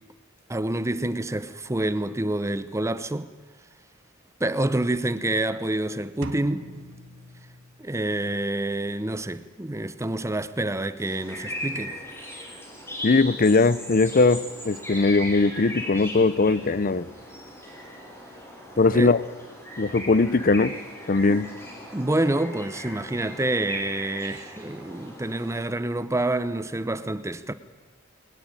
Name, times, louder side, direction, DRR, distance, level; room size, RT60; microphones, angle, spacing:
voice 1, 0.5-3.3 4.4-6.7 7.8-12.0 18.7-19.2 21.2-21.4 21.9-27.5, right 1 dB, 15° right, 0.7 m, -27 dB
sound 1, 6.2-8.2, right 1 dB, 65° right, 2.1 m, -41 dB
sound 2, 11.0-25.6, equal, 10° left, 6.5 m, -38 dB
voice 2, 13.0-17.1 18.8-19.2 19.8-20.8 21.1-21.5, left 3 dB, 45° left, 0.7 m, -20 dB
22.0 x 20.0 x 9.0 m
head